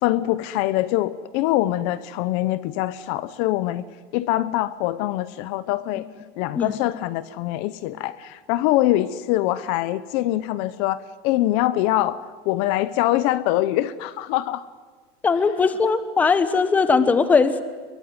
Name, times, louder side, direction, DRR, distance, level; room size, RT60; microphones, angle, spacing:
voice 1, 0.0-3.8 4.1-6.1 6.4-14.7, left 15 dB, 50° left, 15 dB, 0.8 m, -24 dB
voice 2, 15.2-17.6, left 5 dB, 10° left, 11 dB, 1.2 m, -19 dB
25.0 x 22.5 x 9.7 m, 1.4 s
cardioid pair, 175°, 13 cm